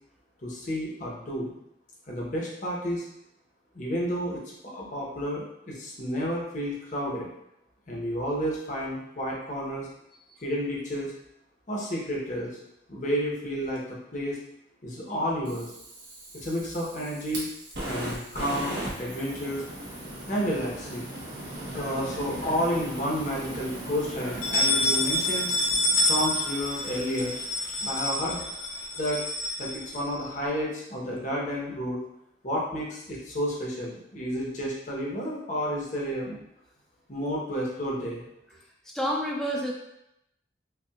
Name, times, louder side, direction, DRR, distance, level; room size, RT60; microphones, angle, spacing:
voice 1, 0.4-1.5 2.1-3.0 3.7-4.4 4.7-7.3 7.9-9.9 10.4-11.1 11.7-12.6 12.9-14.4 14.8-15.7 16.3-17.5 17.8-19.6 20.3-21.1 21.7-25.5 26.0-27.4 27.8-28.4 29.0-29.2 29.6-32.0 32.4-36.4 37.1-38.2, equal, 40° left, -4 dB, 1.0 m, -31 dB
Fire, 15.4-28.6, right 1 dB, 65° right, 1.2 m, -39 dB
sound 1, 21.8-22.7 23.1-23.2 23.5-23.6 24.2-30.4, left 1 dB, 75° left, 1.0 m, -28 dB
voice 2, 38.9-39.7, equal, 5° left, -2 dB, 0.5 m, -28 dB
5.5 x 2.4 x 2.4 m, 0.81 s
head